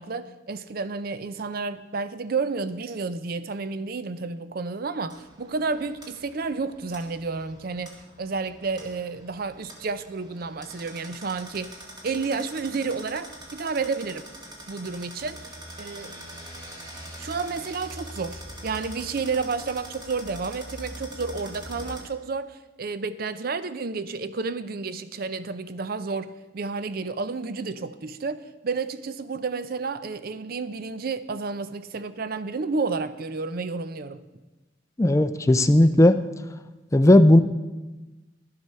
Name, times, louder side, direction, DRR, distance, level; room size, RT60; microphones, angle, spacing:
voice 1, 0.0-11.8 12.0-14.2 14.7-15.5 15.8-16.2 17.2-34.2, right 4 dB, 50° right, 13 dB, 0.5 m, -31 dB
sound 1, 5.1-22.0, equal, 20° right, 1.9 m, -43 dB
voice 2, 35.0-36.2 36.9-37.4, left 1 dB, 15° left, 10 dB, 0.4 m, -16 dB
12.0 x 7.8 x 5.5 m, 1.1 s
head